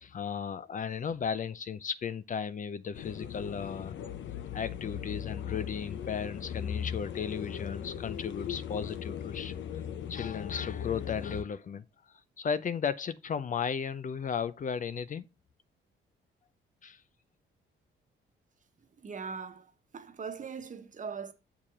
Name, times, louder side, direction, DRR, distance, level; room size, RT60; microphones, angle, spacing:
voice 1, 0.0-3.9 4.5-9.8 10.1-11.8 12.4-15.2 16.8-17.0, left 7 dB, 40° left, 0.6 m, -35 dB
sound 1, 2.9-11.4, left 9 dB, 70° left, 0.9 m, -38 dB
voice 2, 19.0-21.3, right 6 dB, 40° right, 1.3 m, -40 dB
7.3 x 4.8 x 4.8 m
cardioid pair, 90°, 20 cm